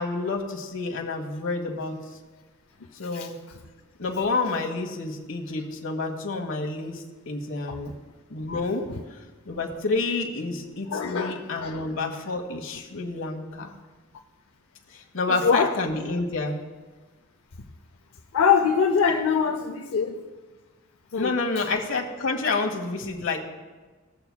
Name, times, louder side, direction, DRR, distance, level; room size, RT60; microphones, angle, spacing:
voice 1, 0.0-2.0 2.9-3.4 4.0-7.9 8.3-8.9 9.4-13.7 14.9-16.6 21.2-23.4, left 3 dB, 65° left, 3 dB, 1.1 m, -29 dB
voice 2, 10.9-11.9 15.3-15.7 18.3-20.2 21.1-21.3, left 6 dB, 90° left, 1 dB, 0.6 m, -23 dB
19.5 x 7.1 x 2.2 m, 1.3 s
head